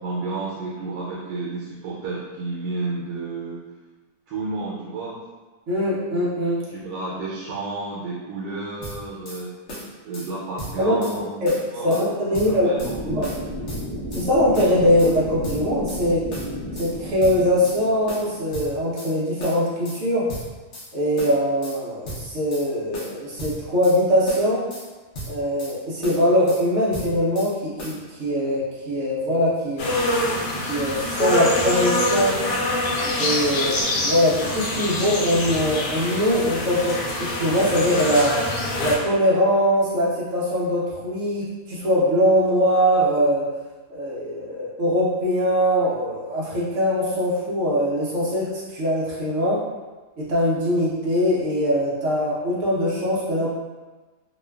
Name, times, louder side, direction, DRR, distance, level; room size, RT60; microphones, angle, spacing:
voice 1, 0.0-3.6 4.3-5.2 6.7-9.5 10.0-11.4 11.7-13.1, right 3 dB, 85° right, -6 dB, 1.2 m, -31 dB
voice 2, 5.7-6.6 10.8-11.5 11.8-12.7 13.0-13.3 14.1-16.2 16.7-20.2 20.9-24.6 25.3-29.9 30.7-32.4 33.0-38.3 38.8-43.4 43.9-49.6 50.2-53.5, equal, 60° right, -7 dB, 0.8 m, -22 dB
sound 1, 8.8-9.4 9.7-10.3 10.6-11.2 11.5-12.1 12.3-12.9 13.2-14.3 14.5-15.1 15.4-16.0 16.3-16.9 17.2-17.8 18.1-19.1 19.4-20.0 20.3-20.9 21.2-21.8 22.0-22.7 22.9-24.0 24.3-24.9 25.1-25.7 26.0-26.6 26.9-27.5 27.8-28.0, equal, 55° left, 0.8 m, -36 dB
sound 2, 12.8-18.7, equal, 25° left, 0.5 m, -33 dB
sound 3, 29.8-39.0, left 1 dB, 80° left, 1.2 m, -25 dB
3.0 x 2.2 x 2.2 m, 1.2 s
omnidirectional pair, 1.8 m